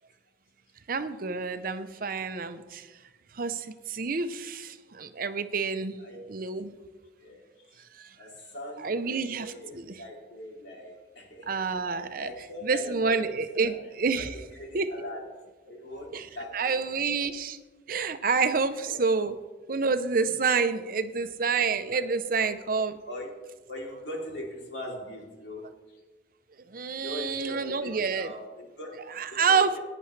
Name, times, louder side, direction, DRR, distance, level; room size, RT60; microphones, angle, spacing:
voice 1, 0.9-2.9 3.3-6.0 6.3-6.7 7.9-8.1 8.8-9.8 11.5-12.3 12.6-14.3 14.7-14.9 16.1-16.3 16.5-17.6 17.9-19.3 19.7-23.0 26.7-28.3 29.2-29.8, right 5 dB, 50° right, 11 dB, 0.6 m, -28 dB
voice 2, 7.2-7.8 8.2-13.7 14.2-14.3 14.5-15.3 15.6-16.8 18.8-19.0 21.1-21.3 21.9-22.1 22.4-22.5 23.1-23.4 23.7-26.0 26.9-29.0 29.3-29.8, left 1 dB, 70° left, -2 dB, 3.1 m, -41 dB
17.0 x 10.0 x 3.3 m, 1.2 s
head